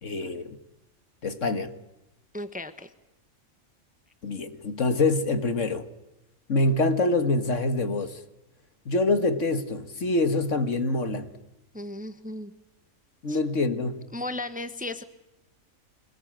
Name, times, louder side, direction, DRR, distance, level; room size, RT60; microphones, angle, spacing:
voice 1, 0.0-0.6 1.2-1.7 4.2-5.9 6.5-8.2 8.9-11.3 13.2-14.0, left 2 dB, 60° left, 2.0 m, -25 dB
voice 2, 2.3-2.9 11.7-12.5 13.3-13.4 14.1-15.0, left 2 dB, 5° right, 1.2 m, -35 dB
25.5 x 20.0 x 8.9 m
omnidirectional pair, 1.4 m